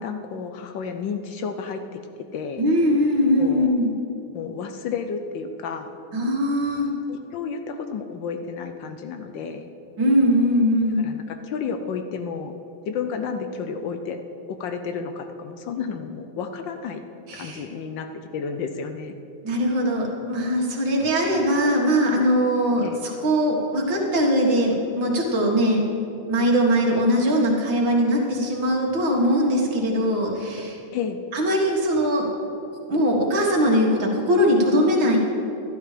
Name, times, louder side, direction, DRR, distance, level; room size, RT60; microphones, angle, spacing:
voice 1, 0.0-2.0 2.3-2.6 3.4-3.8 4.3-6.0 7.1-9.7 11.0-12.6 12.9-14.2 14.5-17.0 17.3-19.1 22.8-23.0 30.9-31.2, left 6 dB, 70° left, 7 dB, 1.3 m, -31 dB
voice 2, 2.6-3.9 6.1-6.9 10.0-11.0 17.3-17.7 19.4-25.8 26.3-30.8 31.3-32.3 32.9-35.2, equal, 65° right, -1 dB, 2.4 m, -21 dB
12.5 x 11.5 x 5.0 m, 2.8 s
omnidirectional pair, 2.3 m